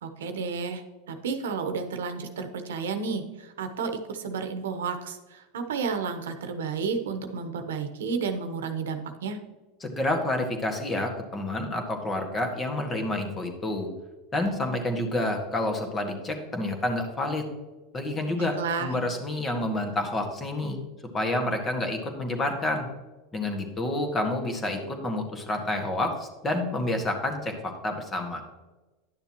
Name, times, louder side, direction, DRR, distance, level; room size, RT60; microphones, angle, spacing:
voice 1, 0.0-9.4 18.4-18.9, right 5 dB, 90° right, 7 dB, 1.0 m, -32 dB
voice 2, 9.8-13.9 14.3-17.5 17.9-20.8 21.1-22.9 23.3-28.4, left 1 dB, 25° left, 4 dB, 1.7 m, -29 dB
11.0 x 6.7 x 3.0 m, 1.2 s
hypercardioid pair, 110°, 0 cm